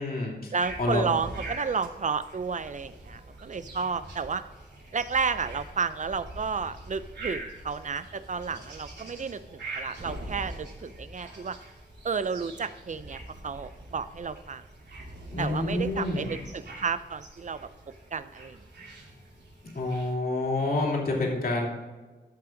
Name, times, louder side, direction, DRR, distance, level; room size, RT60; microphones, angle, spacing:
voice 1, 0.0-0.5 0.8-1.1 15.3-16.3 19.7-21.7, left 2 dB, 55° left, -1 dB, 2.6 m, -28 dB
voice 2, 0.5-4.4 4.9-11.6 12.0-14.6 15.4-17.6 18.1-18.6, right 5 dB, 45° right, 13 dB, 0.4 m, -32 dB
sound 1, 0.6-20.1, right 2 dB, 75° right, 2.8 m, -43 dB
13.0 x 5.9 x 3.8 m, 1.3 s
wide cardioid pair, 115°, 18 cm